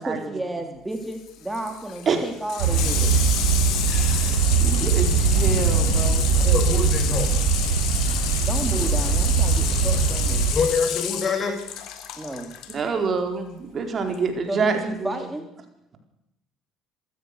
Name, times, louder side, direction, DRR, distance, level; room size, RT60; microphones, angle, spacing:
voice 1, 0.0-3.1 8.4-10.4 12.2-12.5 14.5-15.5, right 1 dB, 10° right, 5 dB, 3.4 m, -32 dB
Water tap faucet / Sink (filling or washing), 0.9-12.8 14.1-14.2, left 10 dB, 60° left, 3.1 m, -30 dB
sound 1, 2.6-10.5, right 6 dB, 75° right, 4.7 m, -21 dB
voice 2, 3.9-6.3 12.7-15.1, right 5 dB, 45° right, 5 dB, 4.3 m, -27 dB
voice 3, 6.4-7.4 10.5-11.6, left 5 dB, 40° left, 6 dB, 5.8 m, -25 dB
26.0 x 14.5 x 6.7 m, 0.84 s
hypercardioid pair, 55°, 0 cm